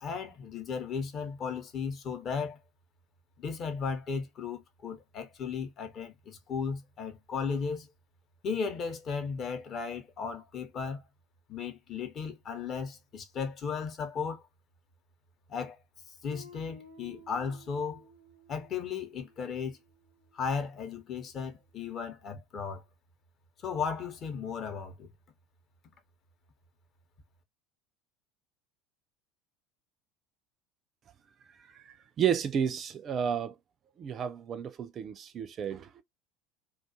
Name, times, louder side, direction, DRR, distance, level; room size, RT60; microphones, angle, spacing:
voice 1, 0.0-2.6 3.4-7.9 8.4-11.0 11.5-14.5 15.5-15.8 16.2-18.0 18.5-19.8 20.3-22.8 23.6-25.1, left 6 dB, 40° left, 0.7 m, -35 dB
Guitar, 16.3-21.0, left 1 dB, 75° left, 0.6 m, -56 dB
voice 2, 31.6-33.6 34.0-36.0, right 8 dB, 35° right, 0.3 m, -32 dB
2.3 x 2.3 x 2.6 m
figure-of-eight pair, 70°, 0 cm